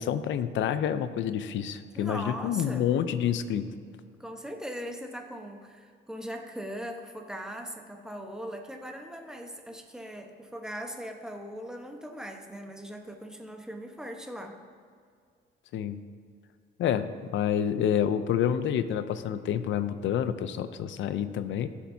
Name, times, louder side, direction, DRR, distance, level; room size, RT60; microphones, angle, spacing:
voice 1, 0.0-3.7 15.7-16.0 16.8-21.7, left 9 dB, 70° left, 12 dB, 0.6 m, -28 dB
voice 2, 2.0-2.9 4.2-14.6, equal, 5° right, 3 dB, 1.1 m, -40 dB
16.0 x 7.3 x 2.7 m, 2.2 s
cardioid pair, 90°, 20 cm